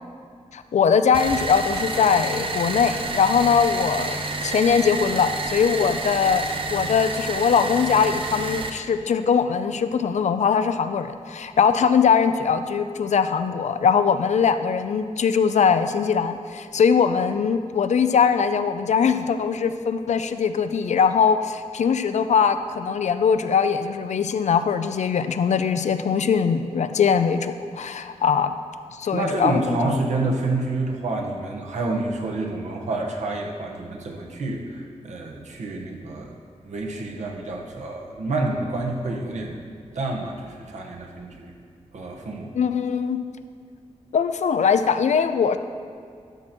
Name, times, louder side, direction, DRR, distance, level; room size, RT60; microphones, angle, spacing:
voice 1, 0.5-28.5 28.9-30.0 42.5-43.2 44.1-45.6, left 6 dB, 70° left, 10 dB, 0.5 m, -21 dB
sound 1, 1.1-8.7, right 3 dB, 45° right, 0.7 m, -29 dB
voice 2, 29.1-36.3 36.6-39.7 39.9-41.5 41.9-42.5, right 2 dB, 70° right, 0 dB, 1.3 m, -28 dB
12.0 x 6.0 x 4.4 m, 2.3 s
wide cardioid pair, 105°, 12 cm